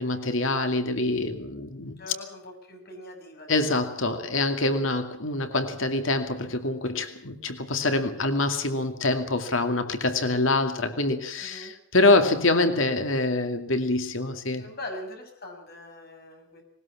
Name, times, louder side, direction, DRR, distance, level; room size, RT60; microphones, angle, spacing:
voice 1, 0.0-2.0 3.5-14.6, left 2 dB, 85° left, 7 dB, 2.3 m, -25 dB
voice 2, 2.0-4.0 4.7-4.9 11.4-11.7 14.6-16.6, left 1 dB, 50° left, 3 dB, 7.2 m, -42 dB
20.0 x 19.5 x 7.3 m, 0.65 s
head